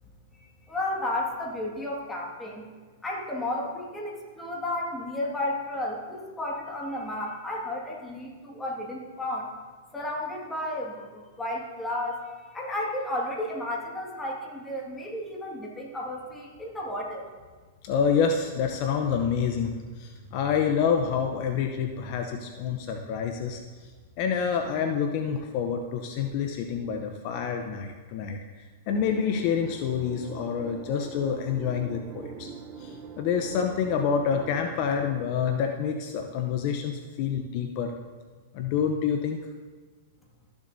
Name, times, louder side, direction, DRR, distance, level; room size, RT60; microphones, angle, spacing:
voice 1, 0.4-2.7 3.0-9.5 9.9-17.2, left 1 dB, 10° left, -2 dB, 1.8 m, -33 dB
voice 2, 17.8-23.9 24.2-28.4 28.9-32.5 32.8-37.9 38.5-39.4, left 7 dB, 50° left, 4 dB, 0.7 m, -27 dB
sound 1, 28.9-35.2, right 5 dB, 35° right, 0.8 m, -43 dB
13.0 x 7.0 x 2.7 m, 1.5 s
hypercardioid pair, 120°, 0 cm